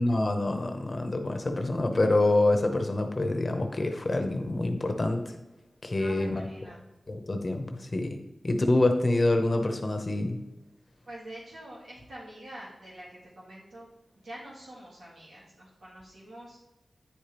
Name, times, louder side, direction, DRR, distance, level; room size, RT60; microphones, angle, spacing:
voice 1, 0.0-5.3 5.8-6.4 7.1-8.2 8.4-10.4, left 2 dB, 35° left, 5 dB, 0.7 m, -26 dB
voice 2, 5.9-6.8 11.1-13.9 14.2-16.6, right 1 dB, 90° right, -7 dB, 2.4 m, -46 dB
9.8 x 5.0 x 3.0 m, 1.0 s
wide cardioid pair, 105°, 0 cm